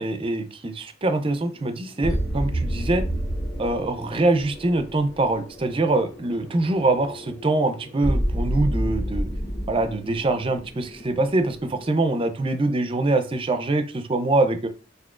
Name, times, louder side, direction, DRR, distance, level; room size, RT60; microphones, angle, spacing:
voice 1, 0.0-3.1 3.6-9.3 9.7-14.7, right 2 dB, 30° right, 9 dB, 0.5 m, -24 dB
sound 1, 1.4-11.9, equal, 20° left, 1.2 m, -30 dB
5.9 x 2.7 x 2.4 m, 0.33 s
head